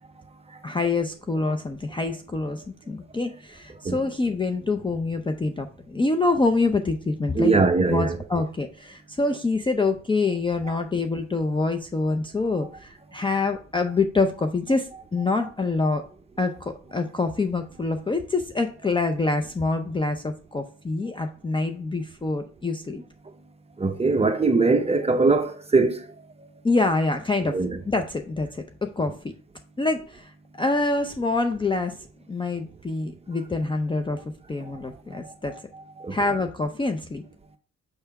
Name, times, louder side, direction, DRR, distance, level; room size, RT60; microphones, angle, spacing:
voice 1, 0.6-7.6 7.9-16.0 16.4-23.0 26.6-27.6 27.8-29.3 29.8-30.3 30.6-32.0 32.3-34.2 34.5-35.6 36.1-37.2, left 3 dB, 15° left, 0.5 m, -26 dB
voice 2, 7.3-8.2 23.8-26.1 27.4-27.8 35.2-35.3 36.0-36.2, right 3 dB, 20° right, 0.8 m, -21 dB
6.8 x 3.4 x 4.6 m
cardioid pair, 90°, 30 cm